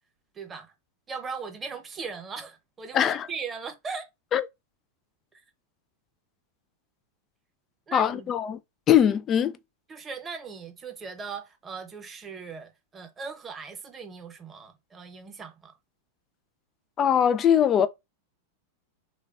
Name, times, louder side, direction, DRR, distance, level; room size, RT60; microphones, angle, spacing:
voice 1, 0.3-0.7 1.1-4.1 5.3-5.4 7.9-8.3 9.9-15.8, right 5 dB, 25° right, 0.7 m, -39 dB
voice 2, 2.9-3.3 4.3-4.4 7.9-8.6 8.9-9.6 17.0-17.9, left 9 dB, 30° left, 0.3 m, -21 dB
3.2 x 2.2 x 2.3 m
hypercardioid pair, 110°, 0 cm